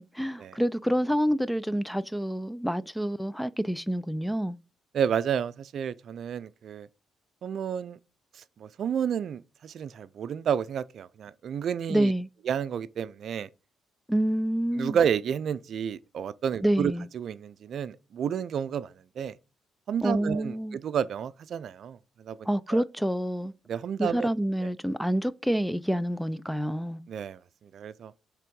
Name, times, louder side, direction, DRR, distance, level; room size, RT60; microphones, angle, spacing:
voice 1, 0.0-4.6 11.9-12.3 14.1-15.0 16.6-17.1 20.0-20.8 22.5-23.5 24.0-27.0, equal, ahead, 0.4 m, -27 dB
voice 2, 4.9-6.9 7.4-8.0 8.6-12.1 12.5-13.5 14.8-19.4 19.9-22.8 23.7-24.3 24.6-24.7 27.1-27.4 27.7-28.1, right 8 dB, 60° right, 0.5 m, -31 dB
7.4 x 3.5 x 5.2 m
cardioid pair, 90°, 0 cm